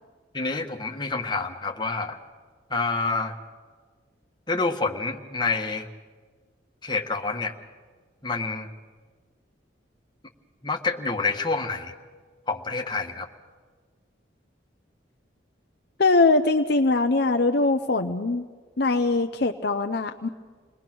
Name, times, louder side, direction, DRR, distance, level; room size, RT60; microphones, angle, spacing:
voice 1, 0.3-2.2 2.7-3.3 4.5-5.9 6.8-7.5 8.2-8.7 10.6-11.9 12.5-13.3, left 3 dB, 25° left, 2 dB, 1.6 m, -27 dB
voice 2, 16.0-18.5 18.8-20.3, left 3 dB, 55° left, 6 dB, 0.7 m, -22 dB
29.0 x 20.5 x 6.2 m, 1.5 s
head